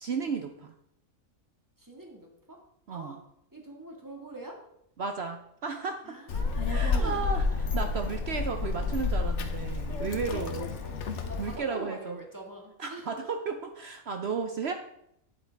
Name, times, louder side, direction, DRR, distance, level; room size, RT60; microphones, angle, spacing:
voice 1, 0.0-0.7 2.9-3.2 5.0-6.0 6.7-7.5 7.7-10.7 11.4-12.2 12.8-14.7, right 5 dB, 55° right, 5 dB, 0.9 m, -33 dB
voice 2, 1.8-2.6 2.9-3.2 3.5-4.6 6.0-7.6 10.3-11.0 11.3-13.3, right 1 dB, 15° right, 0 dB, 1.8 m, -44 dB
Child speech kid speaking, 6.3-11.6, left 4 dB, 60° left, 1.1 m, -30 dB
9.1 x 8.5 x 3.4 m, 0.76 s
omnidirectional pair, 1.4 m